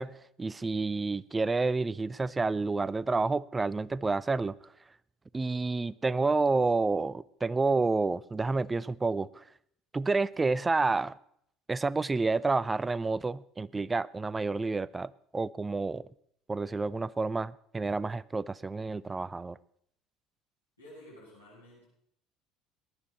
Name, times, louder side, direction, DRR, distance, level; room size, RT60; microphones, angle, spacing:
voice 1, 0.0-4.6 5.3-9.4 9.9-11.2 11.7-16.1 16.5-19.6, right 3 dB, 20° right, 0.4 m, -29 dB
voice 2, 20.8-21.8, left 1 dB, 85° left, 7.5 m, -51 dB
18.5 x 10.5 x 4.3 m
figure-of-eight pair, 60°, 0 cm